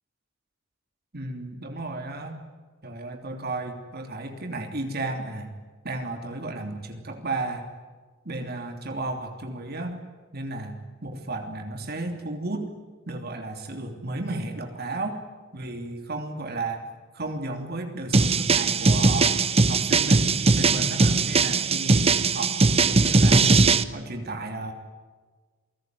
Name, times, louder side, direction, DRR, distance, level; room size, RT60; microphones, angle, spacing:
voice 1, 1.1-2.4 2.8-5.5 5.8-7.7 8.2-10.0 10.3-12.7 13.1-15.2 15.5-16.8 17.1-19.4 19.7-23.6 23.9-24.7, right 2 dB, 50° right, 5 dB, 3.1 m, -33 dB
sound 1, 18.1-23.8, right 3 dB, 30° right, 1.0 m, -20 dB
28.5 x 20.0 x 9.4 m, 1.4 s
head